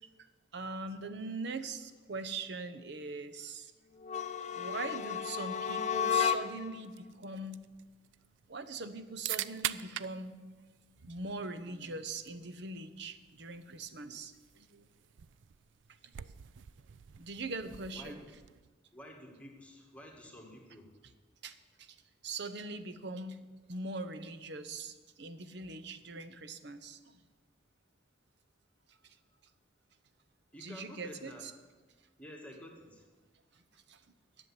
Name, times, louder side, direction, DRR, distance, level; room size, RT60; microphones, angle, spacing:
voice 1, 0.5-3.7 4.5-7.6 8.5-10.4 11.0-14.8 16.0-16.1 17.2-18.2 21.4-22.0 22.2-23.4 23.7-27.2 28.9-29.2 30.6-31.5 33.5-34.0, right 3 dB, 65° right, 9 dB, 0.9 m, -42 dB
sound 1, 4.0-6.8, left 7 dB, 40° left, 0.5 m, -32 dB
sound 2, 6.8-18.8, right 12 dB, 85° right, 0.4 m, -45 dB
voice 2, 18.9-21.0 30.5-31.5 32.2-33.1, equal, 5° left, 0 dB, 1.8 m, -50 dB
11.0 x 7.1 x 9.6 m, 1.3 s
head